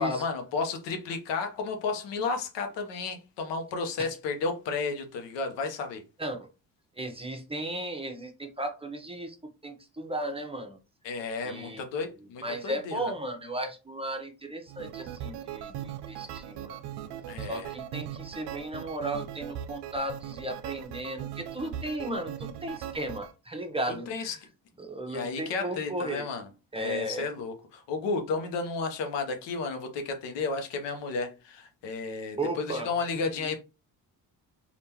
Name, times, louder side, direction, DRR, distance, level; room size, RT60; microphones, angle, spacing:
voice 1, 0.0-6.0 11.0-13.1 17.3-17.7 24.1-24.4 25.1-26.5 26.8-33.6, left 4 dB, 90° left, 0.8 m, -32 dB
voice 2, 7.0-9.4 9.6-10.8 11.4-11.8 12.4-16.8 17.5-24.4 24.8-26.3 26.7-27.3 32.4-32.9 33.1-33.5, right 1 dB, 15° right, 0.8 m, -35 dB
sound 1, 14.7-23.3, right 10 dB, 75° right, 0.5 m, -39 dB
3.6 x 2.5 x 2.8 m
cardioid pair, 70°, 41 cm